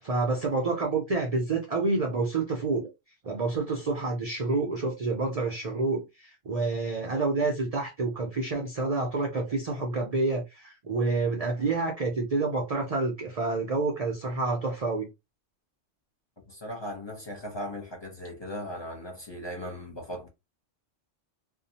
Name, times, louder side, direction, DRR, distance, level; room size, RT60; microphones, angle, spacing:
voice 1, 0.0-2.9 3.2-15.1, right 3 dB, 50° right, 0.4 m, -28 dB
voice 2, 16.5-20.3, equal, 30° left, 0.5 m, -38 dB
2.7 x 2.1 x 2.7 m
omnidirectional pair, 1.3 m